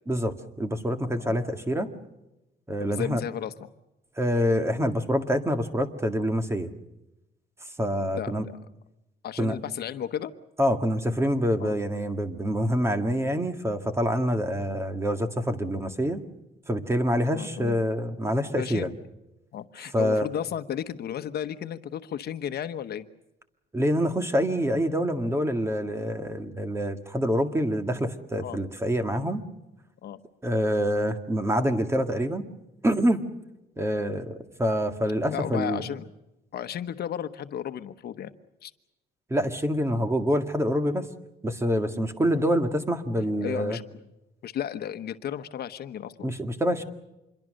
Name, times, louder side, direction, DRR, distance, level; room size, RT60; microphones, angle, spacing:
voice 1, 0.1-1.9 2.7-3.2 4.2-6.7 7.8-8.5 9.4-9.6 10.6-16.2 16.7-18.9 19.9-20.3 23.7-29.4 30.4-32.5 32.8-33.2 33.8-35.8 39.3-41.1 41.4-43.8 46.2-46.8, equal, 15° right, 8 dB, 1.9 m, -26 dB
voice 2, 2.8-3.5 8.1-8.6 9.2-10.3 11.6-11.8 17.3-17.8 18.6-18.9 19.5-23.0 28.4-28.6 30.0-30.2 34.0-34.1 35.3-36.1 36.5-38.3 38.6-38.7 39.9-40.0 43.4-44.0 44.4-46.3, left 9 dB, 60° left, 10 dB, 1.1 m, -34 dB
26.5 x 22.5 x 6.5 m, 0.95 s
cardioid pair, 140°, 18 cm